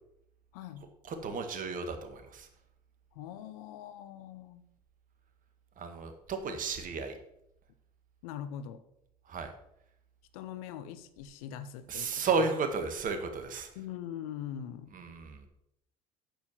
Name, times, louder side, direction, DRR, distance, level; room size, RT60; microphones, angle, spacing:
voice 1, 0.5-0.9 3.1-4.7 8.2-8.8 10.3-12.3 13.7-14.9, left 10 dB, 65° left, 11 dB, 0.8 m, -42 dB
voice 2, 1.1-2.5 5.8-7.2 9.3-9.5 11.9-13.7 14.9-15.5, right 4 dB, 45° right, 7 dB, 1.8 m, -33 dB
9.1 x 6.9 x 5.9 m, 0.77 s
figure-of-eight pair, 60°, 20 cm